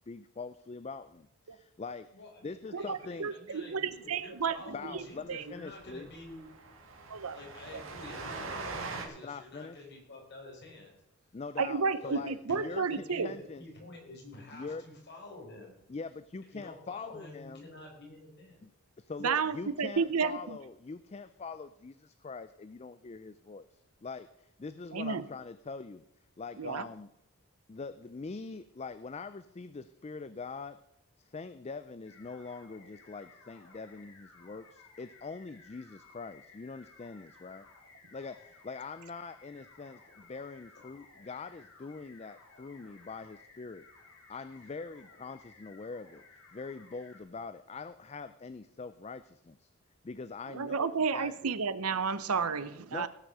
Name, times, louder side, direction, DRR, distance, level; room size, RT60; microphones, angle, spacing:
voice 1, 0.0-2.1 2.4-3.3 4.7-6.1 9.2-9.8 11.3-13.6 14.5-14.8 15.9-17.6 18.6-18.7 19.0-26.0 26.4-27.1 27.7-30.8 31.2-37.7 38.1-43.9 44.3-49.7 50.0-51.6 52.9-53.1, left 4 dB, 30° left, 13 dB, 0.4 m, -43 dB
voice 2, 2.1-6.5 7.3-11.4 12.0-15.8 16.5-18.6, left 2 dB, 50° left, -1 dB, 4.9 m, -49 dB
voice 3, 2.7-3.8 4.1-4.5 4.9-5.0 5.3-5.4 7.1-7.3 11.6-13.3 19.2-20.6 24.9-25.2 26.6-26.8 50.5-53.1, right 5 dB, 80° right, 14 dB, 0.7 m, -31 dB
Train, 4.8-5.0 5.2-5.3 5.7-9.1, right 3 dB, 60° right, 1.9 m, -42 dB
sound 1, 32.0-47.2, left 4 dB, 85° left, 3.7 m, -58 dB
17.5 x 6.3 x 6.7 m, 0.81 s
head